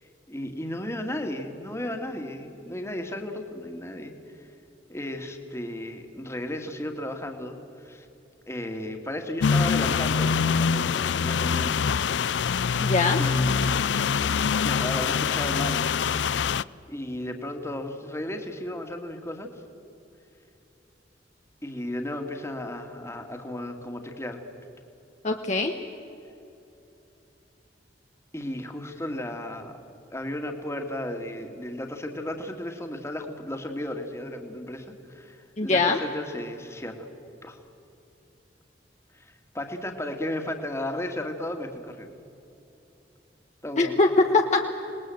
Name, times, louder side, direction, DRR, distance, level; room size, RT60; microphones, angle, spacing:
voice 1, 0.0-4.5 4.9-8.1 8.5-12.4 13.2-16.0 16.9-19.5 21.6-24.4 28.3-29.7 30.1-37.1 37.4-37.6 39.1-42.2 43.6-44.0, left 1 dB, 15° left, 4 dB, 2.1 m, -34 dB
sound 1, 9.4-16.6, left 6 dB, 80° left, 0.5 m, -24 dB
voice 2, 12.8-13.2 25.2-25.7 35.6-36.0 43.8-44.1 44.3-44.6, left 3 dB, 40° left, 3 dB, 1.2 m, -22 dB
27.0 x 20.0 x 7.8 m, 2.9 s
head